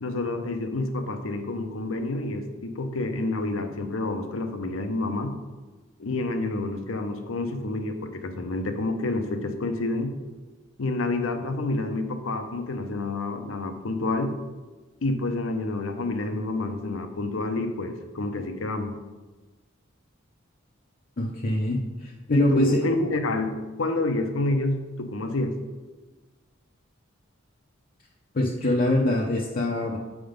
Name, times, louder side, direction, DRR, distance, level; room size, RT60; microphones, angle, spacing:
voice 1, 0.0-5.3 6.0-10.1 10.8-14.3 15.0-18.9 22.3-25.6, left 2 dB, 80° left, 7 dB, 0.7 m, -28 dB
voice 2, 21.2-22.9 28.3-30.0, left 1 dB, 45° left, -1 dB, 0.6 m, -24 dB
7.9 x 3.6 x 5.1 m, 1.3 s
head